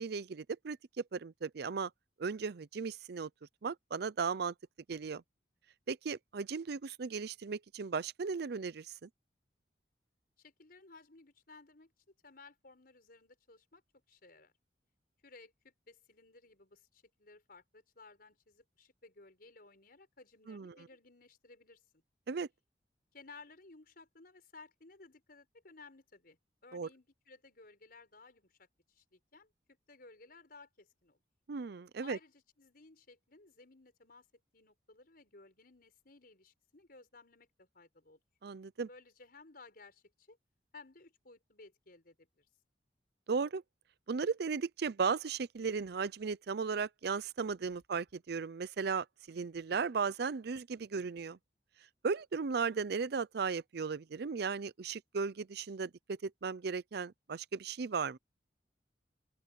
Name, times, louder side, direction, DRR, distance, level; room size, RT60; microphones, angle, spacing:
voice 1, 0.0-1.9 2.2-3.3 3.6-4.5 4.9-5.2 5.9-9.1 20.5-20.7 22.3-22.5 26.7-26.9 31.5-32.2 38.4-38.9 43.3-43.6 44.1-51.4 52.0-58.2, right 5 dB, 65° right, 0.5 m, -36 dB
voice 2, 10.4-11.9 12.2-13.8 14.1-14.5 15.2-22.0 23.1-29.5 29.9-31.2 32.0-34.3 34.5-38.2 38.9-40.4 40.7-42.5, left 3 dB, 60° left, 5.4 m, -58 dB
open air
head